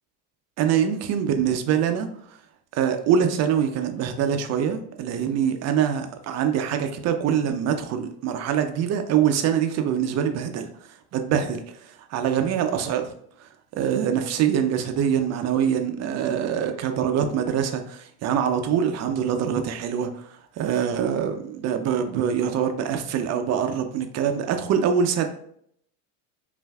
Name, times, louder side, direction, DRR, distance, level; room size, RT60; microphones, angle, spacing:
voice 1, 0.6-2.1 2.7-10.7 11.1-11.6 12.1-13.1 13.7-20.1 20.6-25.3, right 8 dB, 35° right, 6 dB, 0.5 m, -24 dB
5.3 x 2.5 x 2.3 m, 0.68 s
supercardioid pair, 105°, 46 cm